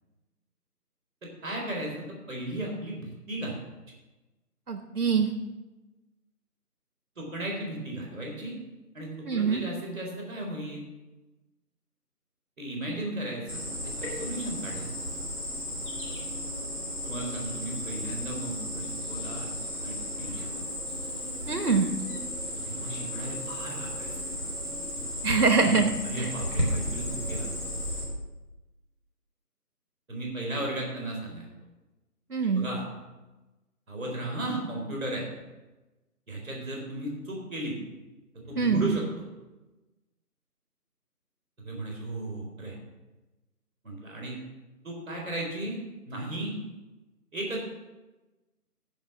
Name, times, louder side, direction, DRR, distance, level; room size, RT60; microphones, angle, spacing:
voice 1, 1.2-3.6 7.1-8.5 8.9-10.8 12.6-14.9 17.0-19.5 19.8-20.5 22.6-24.2 25.6-25.8 26.0-27.7 30.1-31.5 32.4-32.8 33.9-35.3 36.3-37.8 38.5-39.0 41.6-42.7 43.8-44.4 44.8-45.8 46.0-46.5 47.3-47.6, right 1 dB, 5° right, -16 dB, 3.1 m, -35 dB
voice 2, 4.7-5.3 9.3-9.6 21.5-22.2 25.2-26.3 32.3-32.7 38.5-39.0, right 5 dB, 70° right, 6 dB, 1.1 m, -24 dB
Cricket, 13.5-28.0, equal, 10° left, 3.7 m, -34 dB
14.0 x 5.5 x 5.9 m, 1.1 s
figure-of-eight pair, 170°, 47 cm